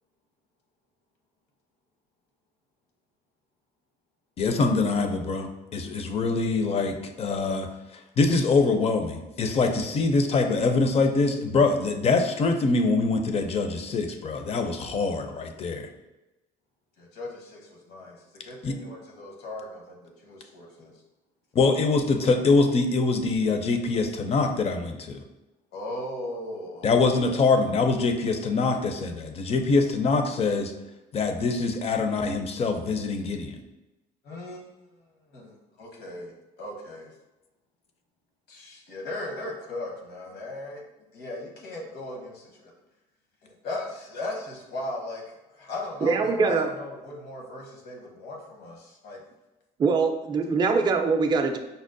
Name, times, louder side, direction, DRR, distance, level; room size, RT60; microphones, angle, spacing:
voice 1, 4.4-15.9 18.6-18.8 21.5-25.2 26.8-30.7 31.1-33.6, left 3 dB, 35° left, 6 dB, 0.4 m, -24 dB
voice 2, 17.0-20.9 25.7-27.5 34.2-34.7 35.3-37.1 38.5-40.8 41.1-42.7 43.4-49.2, left 1 dB, 75° left, -1 dB, 0.9 m, -37 dB
voice 3, 46.0-46.7 49.8-51.6, right 4 dB, 25° right, 5 dB, 0.3 m, -23 dB
5.2 x 2.0 x 2.5 m, 1.0 s
cardioid pair, 110°, 17 cm